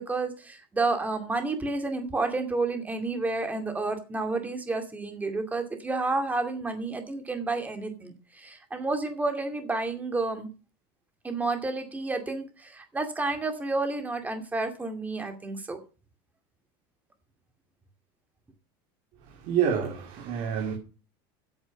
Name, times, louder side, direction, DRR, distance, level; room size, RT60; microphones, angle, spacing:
voice 1, 0.0-10.5 11.2-15.8, right 3 dB, 15° right, 2.4 m, -30 dB
voice 2, 19.2-20.7, right 8 dB, 60° right, 2.6 m, -28 dB
8.8 x 7.9 x 7.0 m
supercardioid pair, 130°, 12 cm